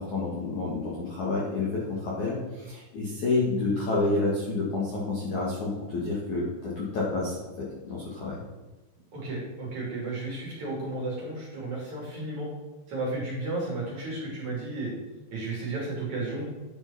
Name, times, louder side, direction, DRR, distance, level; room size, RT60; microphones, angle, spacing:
voice 1, 0.0-8.4, left 3 dB, 55° left, -6 dB, 2.2 m, -29 dB
voice 2, 9.1-12.5 12.9-14.9 15.3-16.5, right 2 dB, 40° right, -4 dB, 3.6 m, -33 dB
10.5 x 5.8 x 5.7 m, 1.2 s
omnidirectional pair, 5.9 m